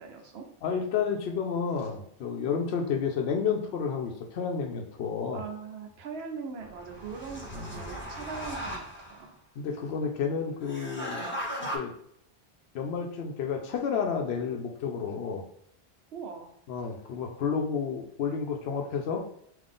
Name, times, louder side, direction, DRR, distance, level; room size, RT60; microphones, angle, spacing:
voice 1, 0.0-0.5 5.3-9.4 11.2-11.4 16.1-16.5, right 5 dB, 80° right, 4 dB, 1.0 m, -41 dB
voice 2, 0.6-5.4 7.6-7.8 9.6-11.2 11.7-11.9 12.7-15.4 16.7-19.2, left 6 dB, 85° left, 2 dB, 0.9 m, -31 dB
sound 1, 6.6-9.2 10.6-11.8, equal, 10° left, 0.8 m, -37 dB
3.7 x 2.8 x 3.7 m, 0.70 s
omnidirectional pair, 1.0 m